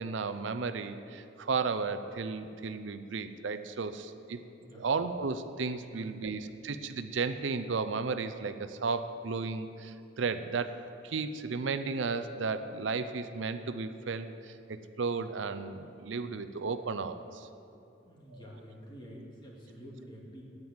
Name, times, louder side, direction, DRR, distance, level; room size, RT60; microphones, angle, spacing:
voice 1, 0.0-4.4 4.7-17.5 18.3-18.5, right 4 dB, 70° right, 10 dB, 0.5 m, -34 dB
voice 2, 5.9-6.2 18.0-20.4, equal, 25° left, -3 dB, 2.3 m, -49 dB
9.4 x 9.0 x 8.8 m, 2.6 s
head